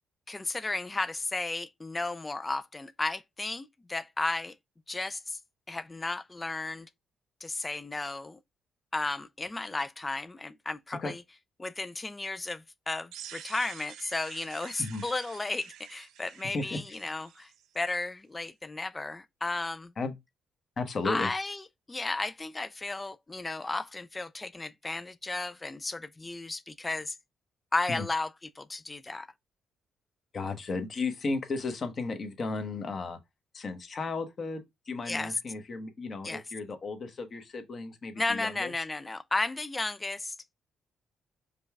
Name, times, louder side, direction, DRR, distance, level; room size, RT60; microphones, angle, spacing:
voice 1, 0.3-4.5 4.9-5.4 5.7-6.9 7.4-8.4 8.9-11.2 11.6-17.5 17.8-19.9 21.0-21.6 21.9-27.1 27.7-28.3 28.6-29.3 35.1-35.3 36.2-36.4 38.2-40.3, left 2 dB, 20° left, 0.3 m, -34 dB
sound 1, 13.1-18.0, right 10 dB, 85° right, 0.4 m, -48 dB
voice 2, 16.4-17.0 20.0-20.1 20.8-21.3 27.9-28.1 30.3-33.2 33.5-38.7, left 3 dB, 45° left, 0.9 m, -34 dB
5.2 x 2.3 x 3.3 m
cardioid pair, 90°, 0 cm